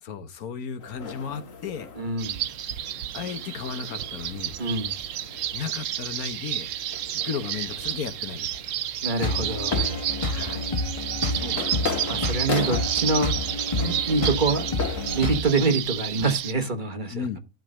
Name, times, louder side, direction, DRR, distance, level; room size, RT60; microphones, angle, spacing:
voice 1, 0.0-1.9 3.1-4.6 5.5-6.7 7.1-8.7 10.3-10.7 11.3-12.1 17.1-17.4, left 7 dB, 85° left, 1.6 m, -35 dB
sound 1, 0.8-15.7, left 5 dB, 65° left, 1.8 m, -38 dB
voice 2, 2.0-2.4 4.6-5.0 9.0-9.8 11.3-11.5 12.1-13.3 13.7-14.7 15.1-17.4, right 3 dB, 35° right, 1.3 m, -26 dB
sound 2, 2.2-16.5, right 11 dB, 80° right, 1.1 m, -31 dB
Electronic dance loop, 9.2-15.4, left 2 dB, 25° left, 1.3 m, -29 dB
12.0 x 4.0 x 6.2 m
omnidirectional pair, 1.5 m